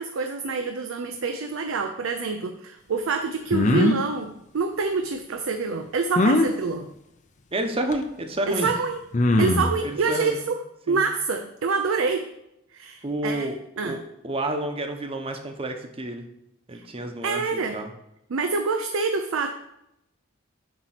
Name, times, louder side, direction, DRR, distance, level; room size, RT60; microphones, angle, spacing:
voice 1, 0.0-6.9 8.5-9.0 9.4-12.3 12.7-13.5 13.8-14.0 16.7-16.8 17.2-17.8 18.3-19.5, right 4 dB, 90° right, 5 dB, 0.5 m, -26 dB
sound 1, 3.5-4.0 6.1-6.5 7.9-8.0 9.1-9.8, left 2 dB, 40° left, 0.5 m, -20 dB
voice 2, 7.5-8.7 9.8-10.4 10.9-11.0 13.0-14.0 14.2-16.3 16.7-17.9, right 1 dB, 30° right, 5 dB, 0.8 m, -30 dB
8.0 x 2.9 x 5.8 m, 0.81 s
head